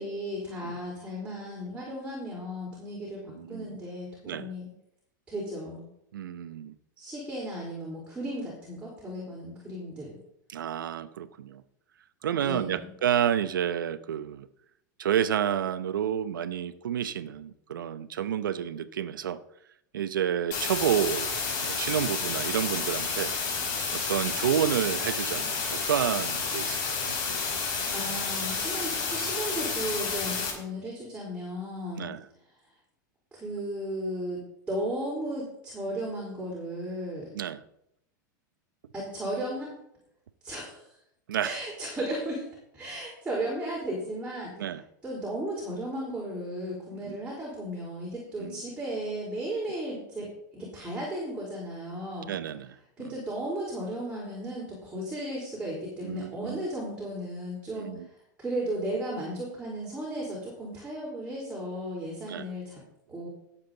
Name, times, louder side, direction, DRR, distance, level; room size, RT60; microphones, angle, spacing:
voice 1, 0.0-4.7 5.3-5.9 7.0-10.2 12.2-12.9 27.9-32.1 33.3-34.4 34.7-37.3 38.9-39.7 40.4-40.8 41.4-42.4 42.7-44.7 45.0-50.3 50.7-52.3 53.0-57.9 58.4-62.8 63.1-63.3, right 1 dB, 10° right, -5 dB, 4.4 m, -35 dB
voice 2, 3.3-3.8 4.3-4.5 6.1-6.7 10.5-11.6 12.2-14.5 15.0-19.4 19.9-23.3 23.9-27.1 32.0-32.2 37.3-37.6 41.3-41.5 44.6-44.8 46.9-47.2 48.4-48.6 52.3-52.8 56.0-56.7 57.7-58.1 62.3-62.4, right 9 dB, 85° right, 13 dB, 0.8 m, -30 dB
sound 1, 20.5-30.5, left 5 dB, 45° left, 5.0 m, -30 dB
17.0 x 7.3 x 4.0 m, 0.77 s
hypercardioid pair, 110°, 11 cm